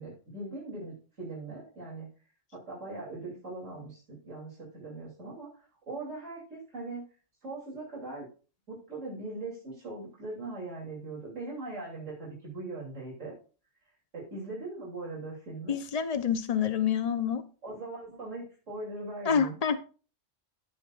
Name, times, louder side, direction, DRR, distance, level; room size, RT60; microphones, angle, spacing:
voice 1, 0.0-2.1 2.5-7.0 7.4-8.3 8.7-13.3 14.1-15.7 17.6-19.6, right 2 dB, 80° right, -5 dB, 3.6 m, -40 dB
voice 2, 15.7-17.4 19.3-19.8, left 7 dB, 35° left, 10 dB, 0.9 m, -27 dB
15.0 x 7.1 x 2.5 m, 0.36 s
omnidirectional pair, 1.3 m